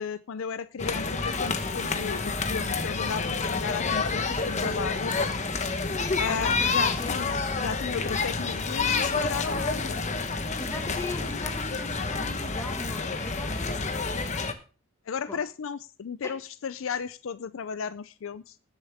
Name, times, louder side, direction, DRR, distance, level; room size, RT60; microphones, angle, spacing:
voice 1, 0.0-5.1 6.2-10.0 10.9-11.0 15.1-18.6, left 6 dB, 65° left, 0.4 m, -34 dB
sound 1, 0.8-14.5, left 4 dB, 35° left, 1.1 m, -29 dB
voice 2, 6.2-7.1 10.6-13.8 15.3-15.4 16.2-16.3, left 2 dB, 15° left, 1.7 m, -39 dB
19.5 x 7.2 x 3.5 m
head